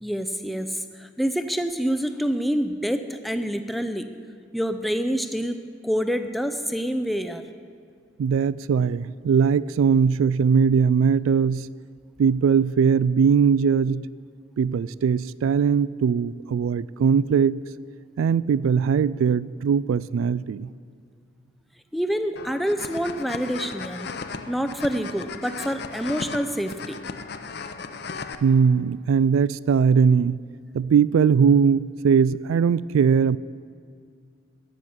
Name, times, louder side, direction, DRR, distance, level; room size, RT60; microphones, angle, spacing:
voice 1, 0.0-4.1 4.5-7.4 21.9-24.1 24.5-27.0, equal, ahead, 8 dB, 0.4 m, -27 dB
voice 2, 8.2-11.7 12.2-14.0 14.6-17.6 18.2-20.7 28.4-30.4 30.7-33.4, right 6 dB, 85° right, 20 dB, 0.3 m, -20 dB
sound 1, 22.4-28.3, left 4 dB, 50° left, 0.6 m, -36 dB
14.5 x 6.4 x 9.5 m, 2.2 s
head